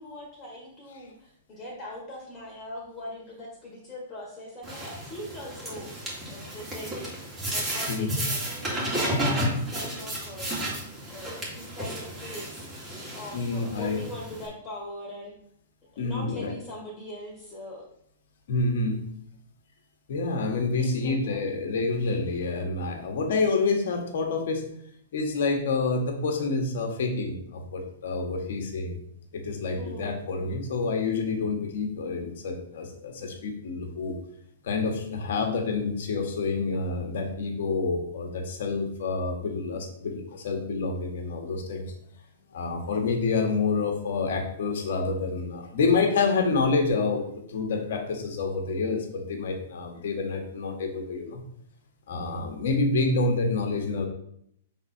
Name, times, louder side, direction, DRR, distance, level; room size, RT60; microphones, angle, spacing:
voice 1, 0.0-6.0 6.3-10.7 11.1-12.7 13.1-15.3 15.9-17.9 20.8-21.4 29.8-30.4, left 1 dB, 25° left, -3 dB, 1.8 m, -41 dB
sound 1, 4.6-14.5, right 1 dB, 15° right, 2.2 m, -32 dB
voice 2, 13.1-14.0 16.0-16.5 18.5-19.0 20.1-24.7 25.1-28.9 29.3-34.2 34.6-41.9 42.5-51.4 52.1-54.1, left 3 dB, 65° left, 3 dB, 1.4 m, -28 dB
5.8 x 3.7 x 4.4 m, 0.70 s
hypercardioid pair, 130°, 0 cm